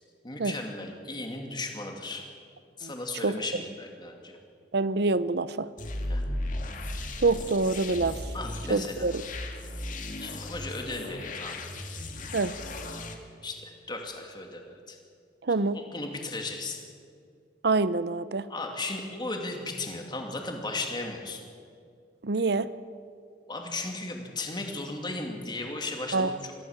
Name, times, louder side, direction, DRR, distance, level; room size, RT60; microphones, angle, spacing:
voice 1, 0.2-2.3 2.8-4.4 6.1-6.2 8.3-9.1 10.2-11.6 13.4-15.0 15.7-16.8 18.5-21.4 23.5-26.5, left 2 dB, 25° left, 3 dB, 2.6 m, -36 dB
voice 2, 4.7-5.7 7.2-8.2 8.7-9.2 12.3-12.5 15.4-15.8 17.6-18.5 22.2-22.7 26.1-26.4, right 3 dB, 65° right, 15 dB, 0.7 m, -26 dB
sound 1, 5.8-13.1, left 1 dB, 45° left, 2.1 m, -36 dB
23.5 x 16.0 x 7.3 m, 2.3 s
head